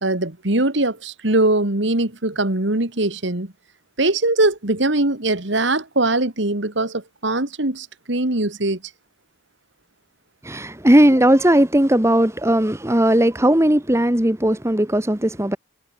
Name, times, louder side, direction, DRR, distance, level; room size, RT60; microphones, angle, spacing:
voice 1, 0.0-3.5 4.0-8.8, right 2 dB, 65° right, 2.3 m, -21 dB
voice 2, 10.4-15.6, right 1 dB, 15° right, 1.2 m, -17 dB
head